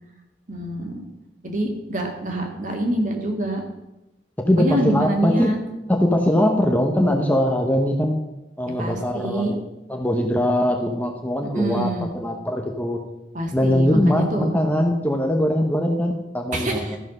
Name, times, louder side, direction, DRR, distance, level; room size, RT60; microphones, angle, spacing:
voice 1, 0.5-1.1 1.4-3.6 4.6-5.6 8.8-9.5 11.5-12.1 13.3-14.5 16.5-17.0, right 1 dB, 45° right, 2 dB, 2.0 m, -26 dB
voice 2, 4.5-5.6 5.9-8.2 8.6-9.6 9.9-13.0 13.5-17.0, left 1 dB, 10° left, 3 dB, 0.8 m, -21 dB
13.0 x 5.8 x 6.5 m, 0.96 s
head